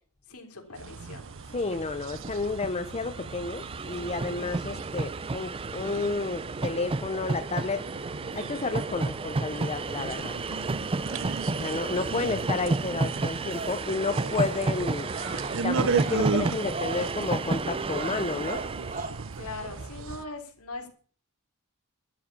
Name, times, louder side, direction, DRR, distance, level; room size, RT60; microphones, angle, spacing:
voice 1, 0.3-1.3 19.4-20.9, left 3 dB, 75° left, 4 dB, 3.4 m, -41 dB
sound 1, 0.7-20.2, right 4 dB, 65° right, 0.8 m, -36 dB
Train, 1.2-1.3 1.5-19.9, right 3 dB, 25° right, 0.5 m, -32 dB
voice 2, 1.5-7.8 8.3-10.4 11.5-15.1 15.6-18.6, left 3 dB, 30° left, 9 dB, 0.8 m, -31 dB
sound 2, 13.5-19.1, right 3 dB, 40° right, 3.7 m, -40 dB
12.5 x 7.8 x 8.4 m, 0.43 s
head